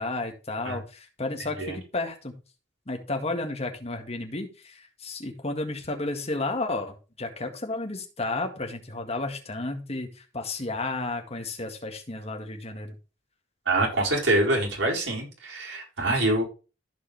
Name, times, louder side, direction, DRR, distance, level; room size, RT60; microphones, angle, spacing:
voice 1, 0.0-2.4 2.9-13.0, left 2 dB, 35° left, 4 dB, 1.9 m, -32 dB
voice 2, 13.7-16.4, right 2 dB, 75° right, -2 dB, 4.8 m, -25 dB
14.5 x 5.0 x 3.4 m, 0.32 s
head